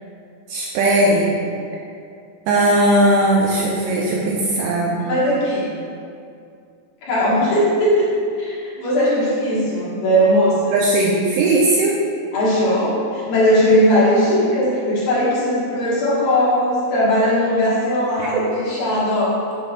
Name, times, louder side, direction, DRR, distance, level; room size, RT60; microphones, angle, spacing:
voice 1, 0.5-1.3 2.5-5.1 10.7-12.0 18.2-18.5, right 1 dB, 80° right, -3 dB, 2.4 m, -18 dB
voice 2, 5.0-5.8 7.0-8.1 8.4-10.7 12.3-19.4, equal, 60° left, -9 dB, 2.9 m, -18 dB
9.1 x 7.9 x 2.4 m, 2.4 s
omnidirectional pair, 5.3 m